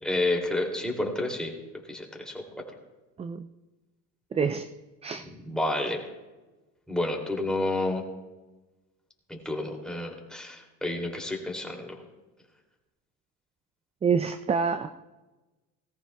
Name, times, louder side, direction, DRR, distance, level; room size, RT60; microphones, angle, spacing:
voice 1, 0.0-1.5 1.9-2.4 5.2-6.0 6.9-8.0 9.3-12.0, left 2 dB, ahead, 0 dB, 2.6 m, -30 dB
voice 2, 4.3-4.7 5.0-5.3 14.0-14.9, right 6 dB, 15° right, 10 dB, 0.3 m, -26 dB
18.5 x 14.0 x 2.3 m, 1.1 s
supercardioid pair, 110°, 39 cm